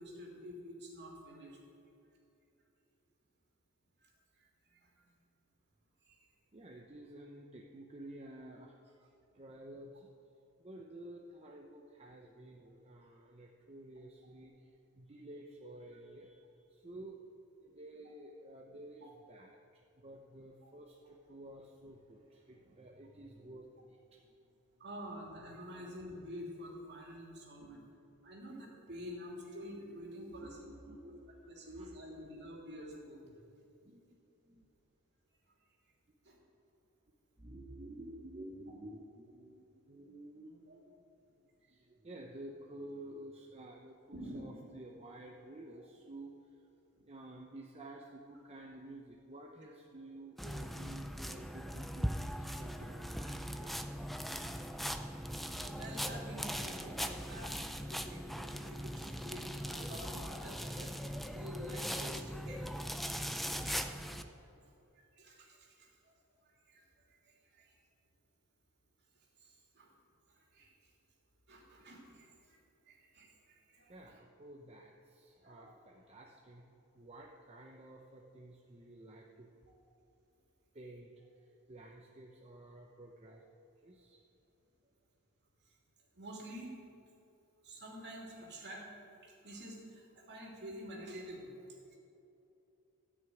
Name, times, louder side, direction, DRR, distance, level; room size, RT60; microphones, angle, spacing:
voice 1, 0.0-1.6 4.0-5.1 6.1-6.2 20.6-20.7 22.6-22.7 24.8-27.8 28.2-30.6 31.0-31.1 31.4-33.2 36.2-36.4 40.7-40.8 44.1-44.4 55.2-55.3 55.6-60.9 61.3-63.8 64.4-64.5 64.9-66.1 66.4-67.7 69.4-69.9 70.3-70.7 71.5-72.6 72.9-74.0 75.4-75.7 85.6-85.7 86.1-86.8 87.6-88.9 89.2-92.0, equal, 50° right, -2 dB, 2.9 m, -49 dB
voice 2, 6.5-10.1 10.6-17.2 17.6-24.2 24.5-24.6 27.6-27.9 30.2-31.1 31.5-31.9 33.8-34.6 37.4-41.1 41.4-46.5 47.0-53.8 73.9-76.7 76.9-79.5 80.7-83.4 83.8-84.2, right 1 dB, 25° right, 0 dB, 0.8 m, -52 dB
sound 1, 50.4-64.2, equal, ahead, 0.5 m, -40 dB
14.5 x 6.2 x 9.1 m, 2.9 s
head